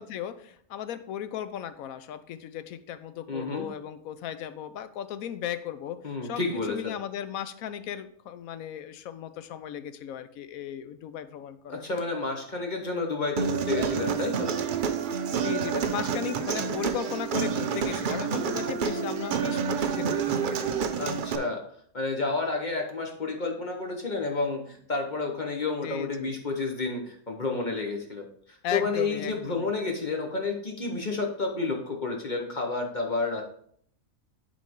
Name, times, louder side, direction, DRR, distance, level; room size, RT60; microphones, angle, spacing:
voice 1, 0.0-11.8 15.4-21.2 25.8-26.3 28.6-29.7, left 10 dB, 75° left, 12 dB, 1.0 m, -36 dB
voice 2, 3.3-3.6 6.0-7.0 11.7-14.5 21.0-21.6 21.9-33.4, left 3 dB, 35° left, 2 dB, 0.9 m, -30 dB
Human voice, 13.4-21.4, right 7 dB, 70° right, 0.4 m, -28 dB
10.5 x 4.2 x 3.6 m, 0.63 s
omnidirectional pair, 1.5 m